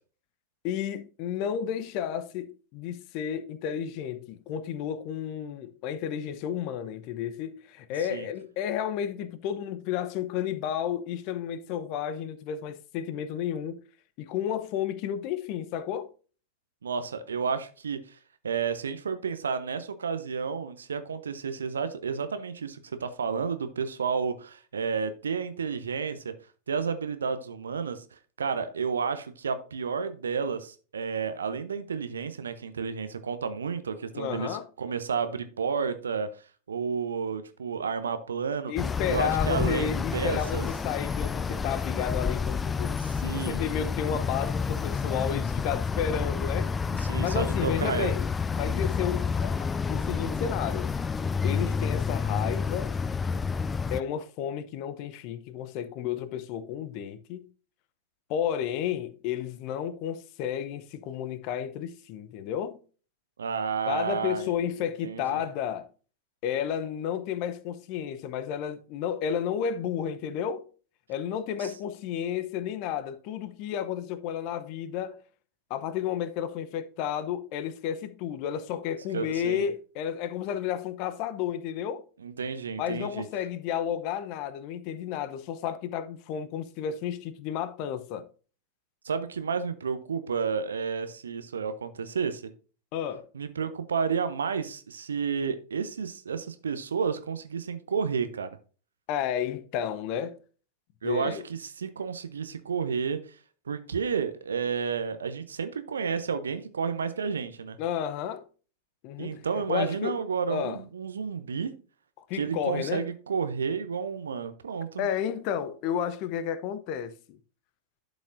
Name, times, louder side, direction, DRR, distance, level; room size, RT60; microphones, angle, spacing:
voice 1, 0.6-13.8 14.2-16.1 34.1-34.7 38.7-43.0 43.3-46.7 47.2-50.9 51.4-52.9 53.9-57.5 58.3-62.8 63.9-65.9 66.4-70.7 71.1-75.2 75.7-82.0 82.8-88.3 92.9-93.3 99.1-100.4 101.0-101.4 107.8-108.5 109.0-110.2 110.5-110.8 112.3-113.0 115.0-117.4, left 9 dB, 45° left, 0.7 m, -32 dB
voice 2, 16.8-18.2 18.4-26.3 26.7-28.0 28.4-36.3 36.7-38.7 39.1-40.7 43.2-43.6 46.9-48.1 63.4-64.6 65.0-65.4 71.6-71.7 79.1-79.7 82.2-83.3 89.0-92.5 93.3-98.5 101.0-103.2 103.7-107.8 109.2-111.7 112.3-115.0, right 6 dB, 70° right, 0.7 m, -31 dB
sound 1, 38.8-54.0, left 5 dB, 15° left, 0.4 m, -29 dB
11.5 x 5.1 x 2.6 m
figure-of-eight pair, 90°, 0 cm